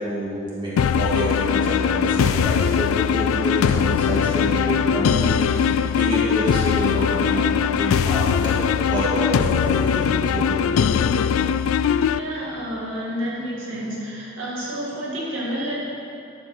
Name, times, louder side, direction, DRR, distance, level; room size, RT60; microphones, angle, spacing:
voice 1, 0.0-8.5 8.9-11.2, equal, 20° right, -8 dB, 2.1 m, -28 dB
sound 1, 0.8-12.2, left 7 dB, 85° left, 0.3 m, -21 dB
voice 2, 12.1-15.8, equal, 70° right, -6 dB, 2.5 m, -29 dB
11.5 x 6.3 x 6.0 m, 2.7 s
head